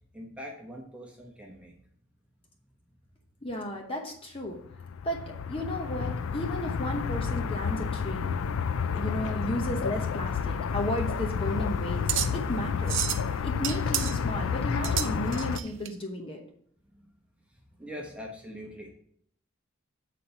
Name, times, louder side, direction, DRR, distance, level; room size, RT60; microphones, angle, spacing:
voice 1, 0.1-1.8 17.0-17.1 17.5-18.9, equal, 5° right, -2 dB, 1.1 m, -43 dB
voice 2, 3.4-4.6 5.0-5.2 5.5-8.3 8.9-13.1 13.4-16.4, left 1 dB, 25° left, 2 dB, 0.8 m, -34 dB
sound 1, 4.6-15.6, left 6 dB, 85° left, 0.4 m, -30 dB
sound 2, 10.7-15.9, right 11 dB, 65° right, 0.7 m, -33 dB
8.4 x 4.2 x 5.6 m, 0.65 s
head